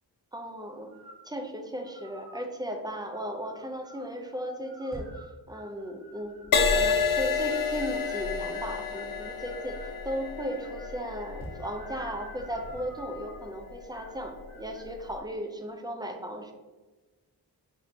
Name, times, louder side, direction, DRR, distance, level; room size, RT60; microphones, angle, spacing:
voice 1, 0.3-0.9 1.2-6.4 6.7-16.5, equal, 10° right, 3 dB, 0.4 m, -36 dB
sound 1, 0.9-1.3 1.8-2.5 3.1-4.1 4.6-6.6 7.1-10.0 10.4-11.0 11.5-13.5 13.9-14.2 14.5-14.9, equal, 40° right, 1.1 m, -51 dB
sound 2, 4.9-5.3 6.2-7.3 11.4-11.8 12.4-13.1, equal, 25° left, 1.5 m, -46 dB
Crash cymbal, 6.5-14.2 14.8-15.1, left 5 dB, 55° left, 0.5 m, -30 dB
4.3 x 2.7 x 2.7 m, 1.2 s
wide cardioid pair, 70°, 40 cm